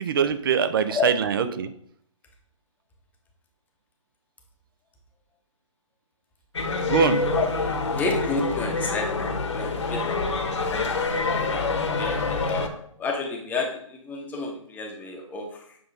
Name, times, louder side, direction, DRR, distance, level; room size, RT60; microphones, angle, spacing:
voice 1, 0.0-1.7 6.9-7.2, right 7 dB, 40° right, 11 dB, 0.6 m, -23 dB
sound 1, 6.5-12.7, left 3 dB, 60° left, 1.3 m, -26 dB
voice 2, 7.9-10.2 10.7-11.1 11.5-12.7 13.0-15.8, left 4 dB, 10° left, 1 dB, 1.0 m, -31 dB
7.9 x 5.6 x 3.9 m, 0.67 s
figure-of-eight pair, 135°, 17 cm